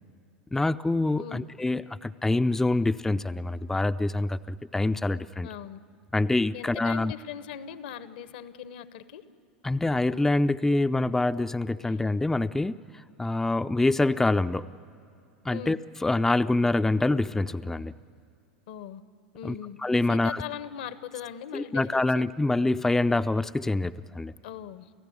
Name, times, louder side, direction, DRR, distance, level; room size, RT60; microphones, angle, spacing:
voice 1, 0.5-5.5 6.1-7.1 9.6-12.8 13.2-14.7 15.5-15.8 16.0-17.9 19.4-19.5 19.8-20.4 21.5-24.3, left 2 dB, 5° left, 12 dB, 0.5 m, -25 dB
voice 2, 5.4-5.8 6.5-9.2 11.9-12.0 15.5-15.8 18.7-19.0 19.3-19.8 20.1-22.2 24.4-24.9, left 9 dB, 65° left, 14 dB, 1.1 m, -40 dB
29.5 x 15.5 x 9.8 m, 2.6 s
figure-of-eight pair, 85°, 5 cm